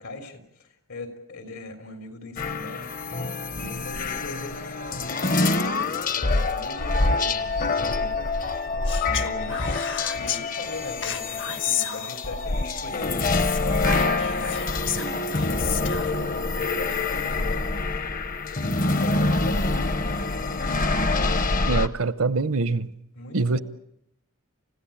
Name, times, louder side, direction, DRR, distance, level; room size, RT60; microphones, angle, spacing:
voice 1, 0.0-2.9 3.6-5.3 6.1-8.7 9.0-9.6 10.1-13.5 13.8-17.7 17.9-18.1 18.4-20.8 23.2-23.6, left 2 dB, 80° left, 3.8 m, -40 dB
sound 1, 2.4-21.9, left 3 dB, 40° left, 0.8 m, -26 dB
Speech, 8.9-10.4 11.0-12.5 13.3-16.1, left 9 dB, 55° left, 1.2 m, -32 dB
voice 2, 21.7-22.9 23.3-23.6, right 3 dB, 75° right, 0.8 m, -24 dB
29.0 x 16.0 x 8.7 m
head